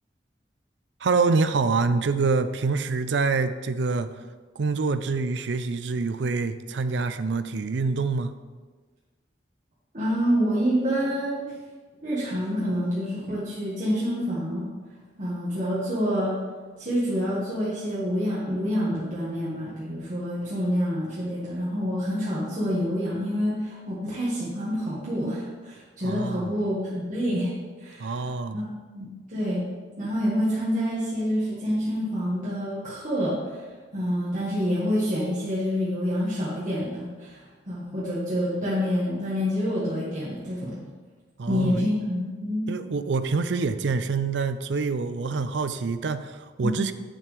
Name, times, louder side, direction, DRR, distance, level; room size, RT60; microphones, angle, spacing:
voice 1, 1.0-4.1 4.6-8.3 26.0-26.5 28.0-28.6 41.4-41.9 42.7-46.9, right 4 dB, 80° right, 11 dB, 0.4 m, -26 dB
voice 2, 9.9-11.5 12.0-14.7 15.2-16.3 16.8-27.5 27.8-28.2 28.5-28.7 28.9-29.6 30.0-33.6 33.9-37.4 37.7-40.8 41.5-42.6 46.6-46.7, equal, 45° right, -9 dB, 1.7 m, -27 dB
8.5 x 7.4 x 3.4 m, 1.4 s
head